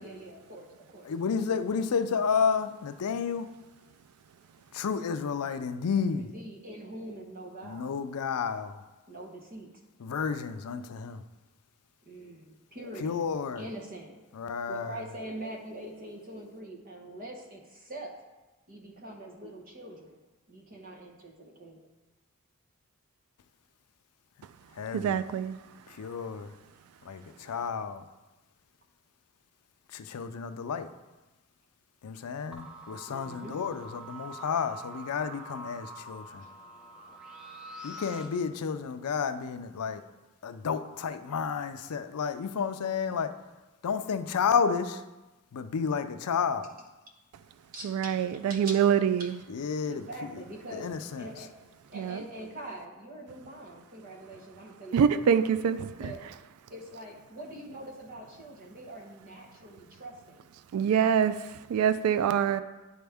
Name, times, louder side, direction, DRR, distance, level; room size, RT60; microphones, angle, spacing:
voice 1, 0.0-1.1 6.2-7.9 9.1-9.7 12.0-13.2 13.5-14.2 14.7-18.2 18.7-20.2 20.5-21.9 33.1-33.6 36.4-36.5 47.7-48.2 48.5-48.9 49.2-49.3 49.9-50.9 51.2-51.5 51.9-55.5 56.0-56.2 56.7-60.5, right 1 dB, 40° right, 0 dB, 1.0 m, -43 dB
voice 2, 1.1-3.5 4.7-6.3 7.6-8.8 10.0-11.2 13.0-13.6 14.3-15.0 24.7-25.2 25.9-26.5 27.0-28.0 29.9-30.9 32.0-36.5 37.8-40.0 40.4-43.3 43.8-45.0 45.5-46.7 49.5-50.1 50.3-50.4 50.7-51.3, left 6 dB, 85° left, 10 dB, 0.4 m, -31 dB
voice 3, 24.9-25.6 47.8-49.3 51.9-52.2 54.9-56.1 60.7-62.6, right 8 dB, 75° right, 13 dB, 0.3 m, -25 dB
sound 1, 32.5-38.3, right 1 dB, 5° right, 0.8 m, -45 dB
10.5 x 4.3 x 3.5 m, 1.1 s
head